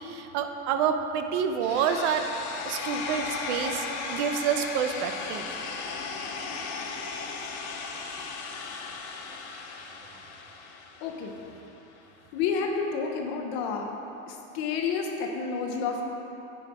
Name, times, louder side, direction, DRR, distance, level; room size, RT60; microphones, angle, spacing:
voice 1, 0.0-2.2 2.6-5.4, right 7 dB, 90° right, 7 dB, 0.7 m, -28 dB
sound 1, 1.6-11.6, left 4 dB, 90° left, 0.9 m, -36 dB
voice 2, 11.0-11.3 12.3-13.9 14.3-16.1, left 5 dB, 55° left, 2 dB, 0.8 m, -30 dB
7.8 x 5.0 x 4.8 m, 3.0 s
cardioid pair, 170°, 34 cm